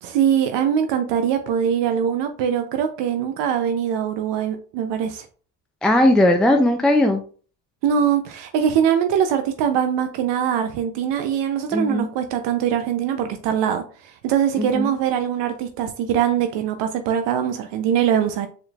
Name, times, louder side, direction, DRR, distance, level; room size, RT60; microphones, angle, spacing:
voice 1, 0.0-5.3 7.8-18.5, right 8 dB, 65° right, 0.7 m, -22 dB
voice 2, 5.8-7.2 11.7-12.1 14.6-14.9, left 1 dB, ahead, 0.4 m, -18 dB
4.5 x 3.7 x 2.4 m
supercardioid pair, 80°, 45 cm